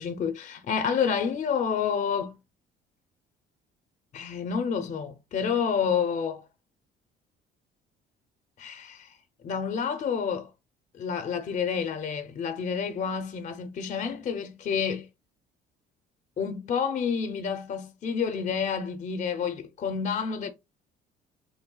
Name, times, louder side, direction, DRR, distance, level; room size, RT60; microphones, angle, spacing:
voice 1, 0.0-2.4 4.1-6.4 8.6-9.1 9.4-10.5 11.0-15.1 16.4-20.5, left 6 dB, 45° left, 0.6 m, -29 dB
3.3 x 2.2 x 3.7 m
cardioid pair, 110°, 17 cm